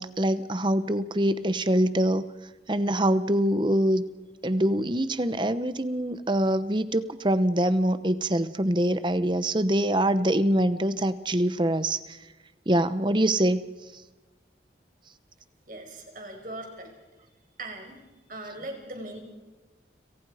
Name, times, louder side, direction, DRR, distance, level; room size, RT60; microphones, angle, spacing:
voice 1, 0.0-2.3 2.7-4.0 4.4-12.2 12.7-13.6, right 1 dB, 25° right, 13 dB, 0.9 m, -24 dB
voice 2, 15.7-16.9 17.6-18.0 18.3-19.2, right 1 dB, 50° right, 3 dB, 5.4 m, -39 dB
30.0 x 27.0 x 5.0 m, 1.2 s
head